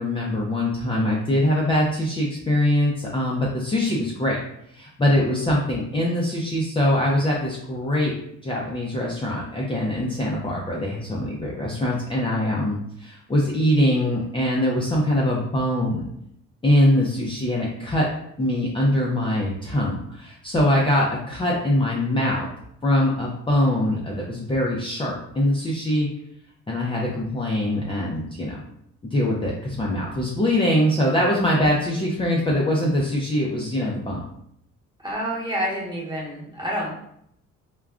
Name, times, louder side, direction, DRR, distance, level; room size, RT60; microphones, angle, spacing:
voice 1, 0.0-4.4 4.7-8.1 8.4-16.1 16.6-18.1 18.4-22.5 22.8-26.1 26.7-28.6 29.0-34.3, left 1 dB, 15° left, -4 dB, 0.5 m, -23 dB
voice 2, 35.0-36.9, equal, 15° right, -4 dB, 1.1 m, -28 dB
3.5 x 2.2 x 2.3 m, 0.72 s
cardioid pair, 90°, 30 cm